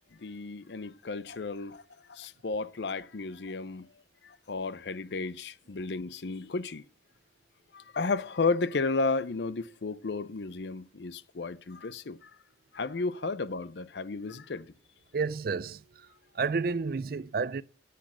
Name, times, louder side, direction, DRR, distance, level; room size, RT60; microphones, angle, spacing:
voice 1, 0.2-1.8 2.1-3.9 4.2-6.8 7.7-12.3 12.7-14.7, left 3 dB, 75° left, 0.6 m, -33 dB
voice 2, 15.1-16.1 16.3-17.6, right 4 dB, 55° right, 0.4 m, -31 dB
10.5 x 8.5 x 6.0 m
head